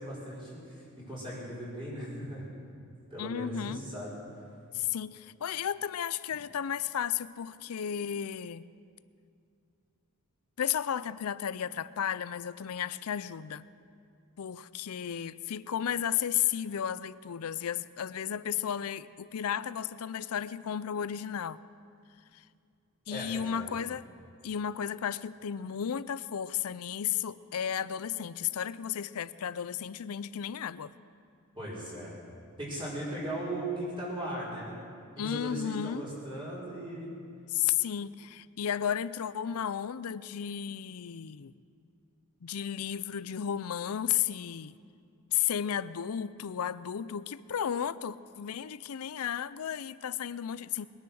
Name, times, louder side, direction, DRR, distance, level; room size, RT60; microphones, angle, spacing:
voice 1, 0.0-2.4 3.1-4.1 23.1-23.7 31.6-32.1 32.6-34.8 35.2-37.1, right 1 dB, 25° right, -8 dB, 5.4 m, -38 dB
voice 2, 3.2-3.8 4.7-8.7 10.6-13.7 14.4-21.6 22.3-22.4 23.1-24.0 24.4-30.9 35.2-36.1 37.5-41.5 42.4-44.8 45.3-50.9, left 9 dB, 75° left, 17 dB, 0.5 m, -33 dB
22.0 x 10.5 x 6.3 m, 2.4 s
head